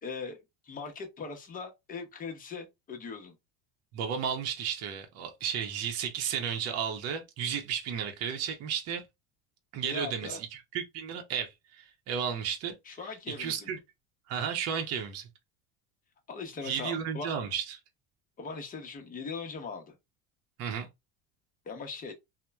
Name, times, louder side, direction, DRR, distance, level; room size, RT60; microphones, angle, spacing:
voice 1, 0.0-0.4 0.6-3.3 9.8-10.4 12.9-13.7 16.3-17.3 18.4-20.0 21.7-22.1, left 4 dB, 25° left, 0.7 m, -40 dB
voice 2, 3.9-9.0 9.7-12.7 13.4-13.8 14.3-15.3 16.6-17.8 20.6-20.9, right 7 dB, 50° right, 0.7 m, -33 dB
2.9 x 2.1 x 2.2 m
supercardioid pair, 120°, 33 cm